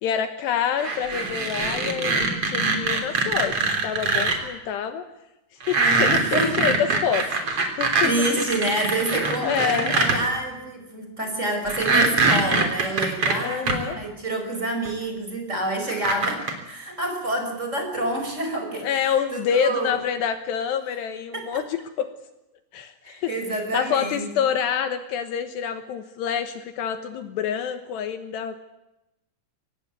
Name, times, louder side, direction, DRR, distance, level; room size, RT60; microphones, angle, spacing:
voice 1, 0.0-5.1 5.7-8.1 9.4-9.9 13.4-14.0 18.8-22.1 22.7-22.9 23.2-23.3 23.7-28.6, left 8 dB, 75° left, 9 dB, 3.1 m, -27 dB
sound 1, 0.8-4.4 5.6-10.2 11.7-13.7 14.9-15.0 15.9-16.5, right 3 dB, 35° right, 3.9 m, -23 dB
voice 2, 6.1-6.7 7.2-7.4 8.0-20.0 21.3-21.4 23.0-24.3, right 1 dB, 15° right, 4 dB, 5.0 m, -28 dB
24.5 x 18.5 x 9.5 m, 0.92 s
omnidirectional pair, 5.3 m